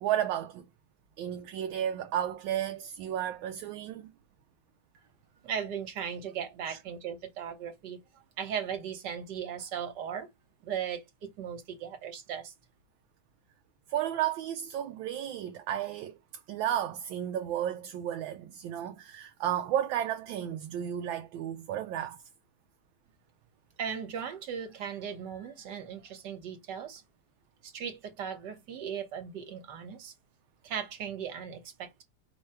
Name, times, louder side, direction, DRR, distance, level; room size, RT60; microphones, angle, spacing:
voice 1, 0.0-0.7 1.2-4.1 6.7-6.8 13.9-16.2 16.5-22.2, right 11 dB, 80° right, 1.3 m, -33 dB
voice 2, 5.4-10.3 10.6-12.5 23.8-27.0 27.6-30.1 30.6-32.0, right 8 dB, 60° right, 1.7 m, -37 dB
5.4 x 2.2 x 4.4 m
omnidirectional pair, 2.2 m